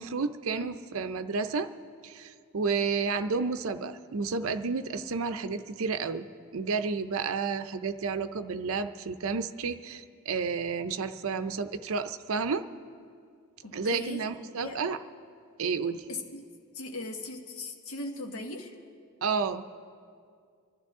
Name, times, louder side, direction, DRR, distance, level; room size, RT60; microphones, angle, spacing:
voice 1, 0.0-1.7 2.0-6.2 6.5-12.6 13.7-15.0 15.6-16.1 19.2-19.6, right 4 dB, 65° right, 9 dB, 0.5 m, -31 dB
voice 2, 13.6-14.8 16.1-16.5 16.7-18.7, left 2 dB, 70° left, 2 dB, 1.4 m, -39 dB
25.0 x 12.5 x 3.7 m, 2.2 s
head